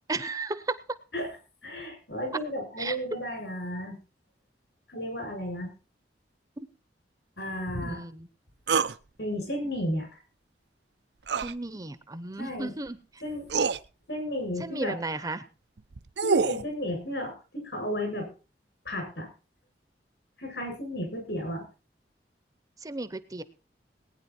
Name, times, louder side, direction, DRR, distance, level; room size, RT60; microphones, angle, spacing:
voice 1, 0.1-1.0 2.8-3.0 7.8-8.3 11.4-13.2 14.6-15.4 22.8-23.4, right 2 dB, 20° right, 14 dB, 0.7 m, -34 dB
voice 2, 1.6-4.0 4.9-5.7 7.4-8.0 9.2-10.2 12.4-12.7 13.2-13.5 14.1-14.9 16.2-18.3 18.8-19.3 20.4-21.6, equal, 75° left, 3 dB, 7.8 m, -33 dB
sound 1, 8.7-9.0 11.3-11.5 12.9-13.0 13.5-13.8 15.8-16.6, right 5 dB, 75° right, 0.6 m, -25 dB
19.5 x 9.8 x 4.4 m, 0.34 s
head